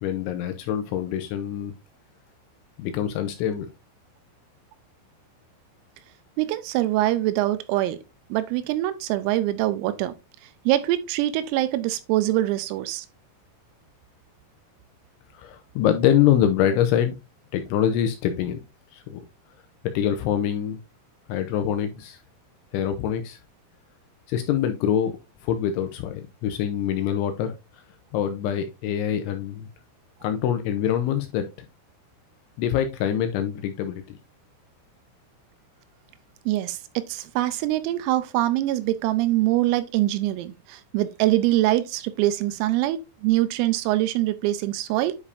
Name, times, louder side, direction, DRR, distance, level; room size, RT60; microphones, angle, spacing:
voice 1, 0.0-1.7 2.8-3.7 15.3-17.2 17.5-18.6 18.9-19.2 19.9-20.8 21.3-22.2 22.7-23.4 24.3-25.1 25.4-27.5 28.1-29.7 30.2-31.5 32.6-34.2, left 10 dB, 80° left, 2.8 m, -24 dB
voice 2, 6.4-8.0 8.3-10.1 10.7-13.1 36.5-45.2, right 15 dB, 85° right, 3.3 m, -24 dB
9.8 x 5.1 x 2.6 m
omnidirectional pair, 5.9 m